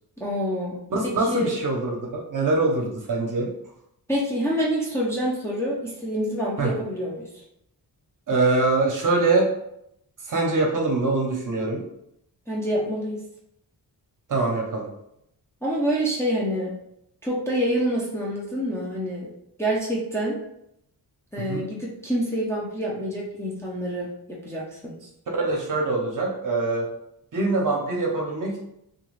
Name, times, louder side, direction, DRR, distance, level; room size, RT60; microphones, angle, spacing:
voice 1, 0.2-1.5 4.1-7.3 12.5-13.2 15.6-16.7 17.2-19.3 19.6-20.4 21.3-24.9, equal, 5° left, -5 dB, 0.4 m, -27 dB
voice 2, 0.9-3.5 6.6-6.7 8.3-9.5 10.3-11.8 14.3-14.9 21.5-21.6 25.4-26.9 27.3-28.6, right 3 dB, 50° right, 0 dB, 0.7 m, -23 dB
2.4 x 2.2 x 3.0 m, 0.78 s
wide cardioid pair, 135°, 40 cm